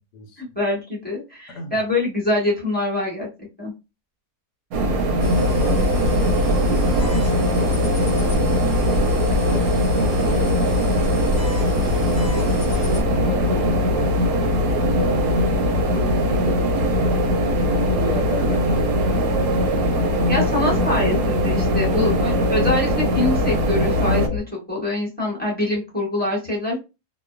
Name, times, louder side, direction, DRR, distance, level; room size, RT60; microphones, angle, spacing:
voice 1, 0.4-3.3 3.6-3.7 20.0-24.4 24.7-26.8, left 2 dB, 5° left, 1.0 m, -24 dB
voice 2, 1.5-1.8 4.8-6.9 8.0-8.8 9.4-11.2 11.7-12.5 13.0-15.5 15.9-17.1 17.6-19.8 20.8-20.9 21.9-22.1, left 3 dB, 80° left, 1.2 m, -35 dB
sound 1, 4.7-24.3, right 1 dB, 70° right, 0.9 m, -22 dB
sound 2, 5.2-13.0, equal, 55° left, 0.8 m, -32 dB
sound 3, 5.2-24.4, left 5 dB, 90° right, 1.3 m, -25 dB
3.0 x 2.1 x 2.3 m
omnidirectional pair, 1.7 m